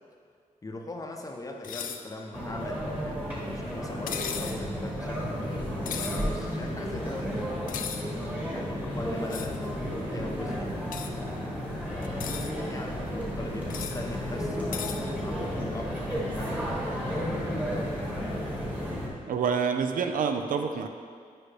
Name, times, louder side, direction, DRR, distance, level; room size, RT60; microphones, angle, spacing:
voice 1, 0.6-3.2 3.5-5.7 5.9-8.0 8.5-11.0 11.9-18.0, left 2 dB, 25° left, 2 dB, 0.6 m, -41 dB
sound 1, 1.6-2.0 4.1-4.6 5.8-6.2 7.7-8.0 9.3-9.6 10.9-11.1 12.0-12.5 13.7-14.0 14.7-15.0, left 8 dB, 75° left, 0.4 m, -35 dB
sound 2, 2.3-19.1, equal, 10° right, 1.4 m, -32 dB
sound 3, 12.5-13.4 15.2-16.6, right 1 dB, 60° right, 1.3 m, -49 dB
voice 2, 19.3-20.9, right 6 dB, 75° right, 7 dB, 0.5 m, -27 dB
8.9 x 4.8 x 3.3 m, 2.2 s
wide cardioid pair, 125°, 14 cm